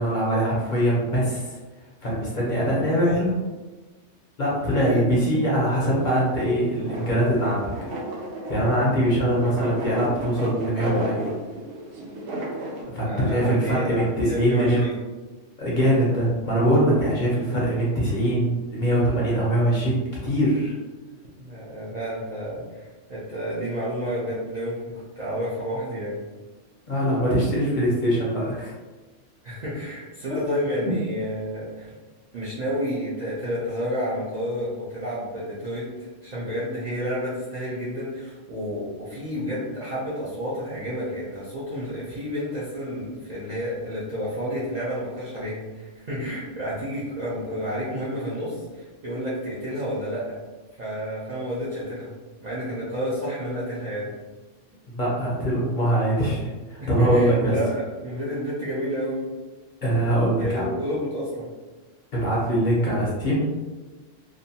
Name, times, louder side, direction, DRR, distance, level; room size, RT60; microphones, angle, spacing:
voice 1, 0.0-1.6 2.0-3.3 4.4-7.7 8.5-11.3 12.9-14.8 15.6-20.7 26.9-28.7 30.8-30.9 54.9-57.5 59.8-60.6 62.1-63.5, equal, 50° left, -6 dB, 0.7 m, -22 dB
sound 1, 5.9-12.8, right 1 dB, 70° right, 0.9 m, -33 dB
voice 2, 13.0-14.9 21.4-26.2 29.4-31.9 32.3-50.4 50.7-52.1 52.4-54.1 56.8-59.3 60.4-61.5, equal, 50° right, -9 dB, 0.5 m, -30 dB
2.6 x 2.1 x 2.7 m, 1.2 s
omnidirectional pair, 1.3 m